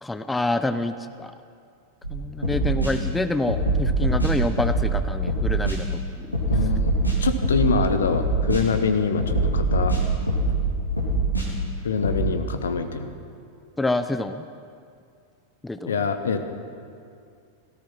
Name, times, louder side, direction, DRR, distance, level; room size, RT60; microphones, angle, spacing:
voice 1, 0.0-1.3 2.1-6.3 13.8-14.4 15.6-16.0, left 2 dB, 10° left, 10 dB, 0.5 m, -27 dB
sound 1, 2.0-2.1 2.4-2.9 3.5-4.9 5.3-5.8 6.3-7.8 8.1-8.6 9.2-10.6 11.0-11.5 12.0-12.2, right 2 dB, 85° left, 2.9 m, -23 dB
voice 2, 6.5-6.9 7.2-10.0 11.8-13.1 15.9-16.4, left 5 dB, 65° left, 9 dB, 1.1 m, -24 dB
17.0 x 14.5 x 5.9 m, 2.3 s
figure-of-eight pair, 90°, 0 cm